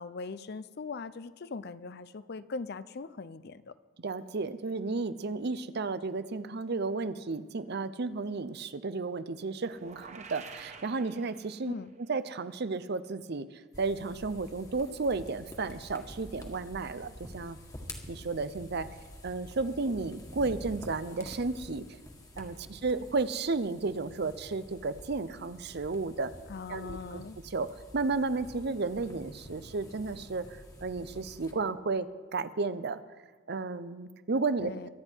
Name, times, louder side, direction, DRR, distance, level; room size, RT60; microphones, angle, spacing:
voice 1, 0.0-3.8 11.6-11.9 26.5-27.4 34.6-34.9, left 4 dB, 50° left, 15 dB, 0.5 m, -40 dB
voice 2, 4.0-11.7 12.1-17.6 18.1-18.9 19.2-21.8 22.4-26.3 26.7-33.0 33.5-34.9, right 3 dB, 55° right, 14 dB, 0.6 m, -33 dB
sound 1, 9.7-11.9, right 4 dB, 35° right, 1.0 m, -49 dB
sound 2, 13.7-31.5, left 1 dB, 15° left, 1.6 m, -48 dB
24.5 x 9.6 x 4.5 m, 1.4 s
head